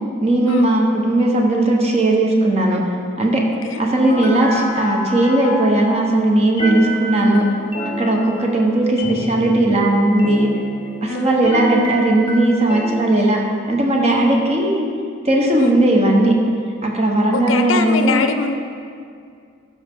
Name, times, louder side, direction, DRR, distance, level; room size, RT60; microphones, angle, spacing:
voice 1, 0.2-2.8 3.2-3.4 3.8-7.4 8.0-10.5 11.0-13.4 13.7-14.8 15.2-16.3 16.8-18.3, right 1 dB, 35° right, -1 dB, 1.1 m, -17 dB
sound 1, 4.0-6.1 6.6-11.1 11.5-13.0, equal, 25° left, 0.9 m, -28 dB
voice 2, 17.3-18.6, left 4 dB, 75° left, 7 dB, 0.5 m, -23 dB
12.0 x 5.6 x 3.7 m, 2.3 s
head